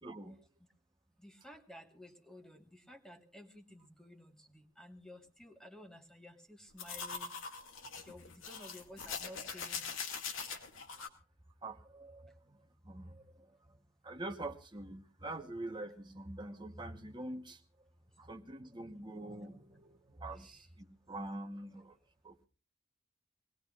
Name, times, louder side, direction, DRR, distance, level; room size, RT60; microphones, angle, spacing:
voice 1, 0.0-0.4 11.6-12.3 12.8-13.2 14.0-17.6 18.2-22.0 22.2-22.5, right 2 dB, 20° right, 6 dB, 1.0 m, -45 dB
voice 2, 1.2-4.3 4.8-7.3 8.0-9.8, left 1 dB, 5° left, 4 dB, 1.4 m, -54 dB
sound 1, 6.8-11.1, left 5 dB, 75° left, 2.1 m, -42 dB
24.0 x 19.5 x 2.4 m, 0.36 s
head